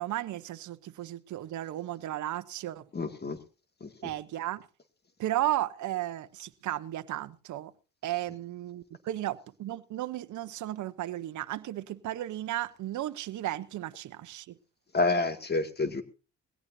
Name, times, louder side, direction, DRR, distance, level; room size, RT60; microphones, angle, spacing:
voice 1, 0.0-2.9 4.0-4.7 5.2-7.7 8.0-14.6, right 14 dB, 75° right, 0.9 m, -34 dB
voice 2, 2.9-3.4 3.8-3.9 14.9-16.0, left 3 dB, 35° left, 2.2 m, -28 dB
20.5 x 17.0 x 2.7 m
cardioid pair, 90°, 30 cm